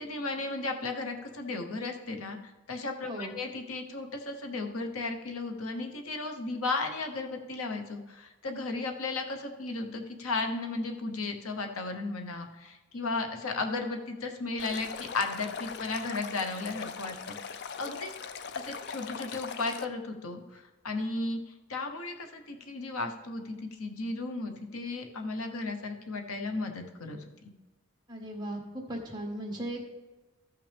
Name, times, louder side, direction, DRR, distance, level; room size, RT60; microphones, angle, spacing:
voice 1, 0.0-2.4 2.7-18.1 18.5-27.2, left 3 dB, 85° left, 4 dB, 1.0 m, -35 dB
voice 2, 3.0-3.4 28.1-29.8, right 1 dB, 20° right, 0 dB, 1.3 m, -37 dB
Stream, 14.6-19.8, left 6 dB, 50° left, 0.4 m, -40 dB
14.5 x 5.8 x 3.4 m, 1.1 s
head